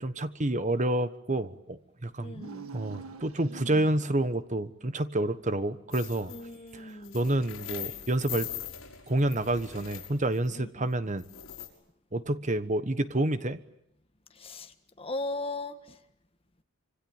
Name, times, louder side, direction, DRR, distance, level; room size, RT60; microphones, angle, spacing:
voice 1, 0.0-2.4 2.7-6.3 6.7-8.5 9.1-11.2 12.1-13.6, right 1 dB, 35° right, 12 dB, 1.3 m, -29 dB
voice 2, 2.2-2.7 6.3-7.2 10.5-10.9 14.3-16.0, left 2 dB, 25° left, 8 dB, 1.6 m, -38 dB
sound 1, 2.3-4.3, right 3 dB, 80° right, 1.7 m, -44 dB
sound 2, 5.9-6.5 6.9-10.5 11.2-11.7, left 11 dB, 70° left, 6.0 m, -41 dB
26.5 x 25.0 x 8.9 m, 0.76 s
head